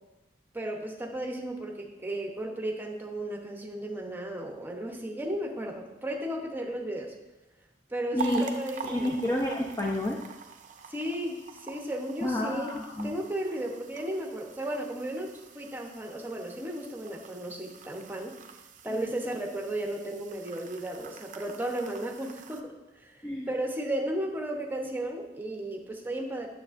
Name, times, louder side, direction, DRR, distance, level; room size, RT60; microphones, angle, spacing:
voice 1, 0.5-7.1 7.9-9.1 10.9-18.3 18.8-23.2 23.5-26.5, right 1 dB, 10° right, 0 dB, 0.8 m, -34 dB
voice 2, 8.1-8.5 8.8-10.2 12.2-13.1 18.9-19.1 23.2-23.5, left 1 dB, 20° left, -1 dB, 0.6 m, -29 dB
sound 1, 8.2-22.6, right 5 dB, 45° right, 0.5 m, -45 dB
8.9 x 7.0 x 2.5 m, 1.0 s
head